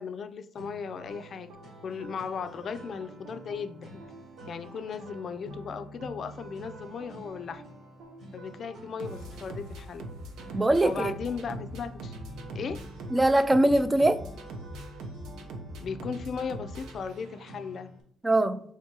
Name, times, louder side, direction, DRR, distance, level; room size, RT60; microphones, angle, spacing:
voice 1, 0.0-1.5 1.8-4.0 4.5-7.6 8.3-10.1 10.8-12.1 12.5-12.8 15.8-17.9, left 6 dB, 55° left, 0.4 m, -36 dB
sound 1, 0.6-18.0, right 1 dB, 60° right, 1.3 m, -48 dB
sound 2, 1.0-17.7, right 1 dB, 85° right, 0.7 m, -44 dB
voice 2, 10.5-11.1 13.1-14.2 18.2-18.6, right 1 dB, 20° right, 0.3 m, -22 dB
4.5 x 3.5 x 2.9 m
cardioid pair, 90°, 0 cm